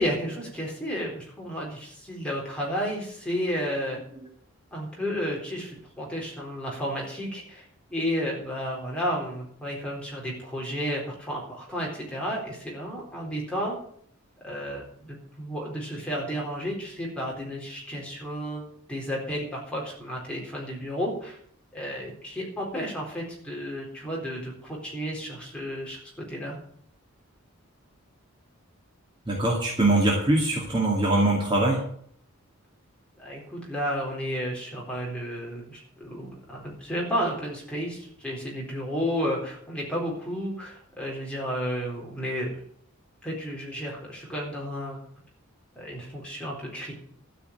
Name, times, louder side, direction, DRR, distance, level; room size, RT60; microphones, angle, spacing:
voice 1, 0.0-4.0 4.7-13.8 14.4-18.6 18.9-21.4 21.7-26.0 26.3-26.6 33.2-42.5 43.2-45.0 45.8-46.9, equal, 5° left, -3 dB, 4.1 m, -32 dB
voice 2, 29.3-31.8, right 2 dB, 20° right, -3 dB, 2.4 m, -22 dB
13.0 x 5.9 x 9.0 m, 0.63 s
head